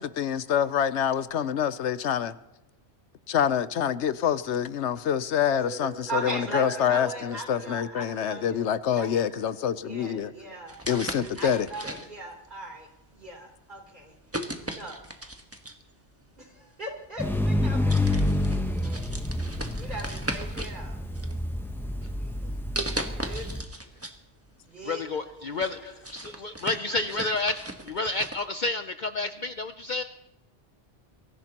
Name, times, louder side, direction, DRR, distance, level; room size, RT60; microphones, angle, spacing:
voice 1, 0.0-2.3 3.3-10.3 10.9-11.7, left 9 dB, 80° left, 14 dB, 1.0 m, -26 dB
voice 2, 5.6-14.2 14.6-15.0 16.4-19.1 19.8-21.0 22.2-22.6 23.1-23.5 24.6-25.9 26.4-26.6 26.9-27.3, right 2 dB, 45° right, 1 dB, 3.6 m, -39 dB
sound 1, 10.7-12.3 13.1-13.3 14.3-15.9 17.0-17.1 17.5-17.6 17.9-20.8 21.1-21.9 22.8-24.2 24.5-24.6 25.1-28.4, right 1 dB, 15° right, 1.2 m, -37 dB
sound 2, 17.2-23.6, left 1 dB, ahead, 0.8 m, -28 dB
voice 3, 24.8-27.5 27.9-30.0, left 2 dB, 50° left, 9 dB, 0.7 m, -30 dB
23.5 x 15.0 x 2.9 m, 0.94 s
omnidirectional pair, 1.2 m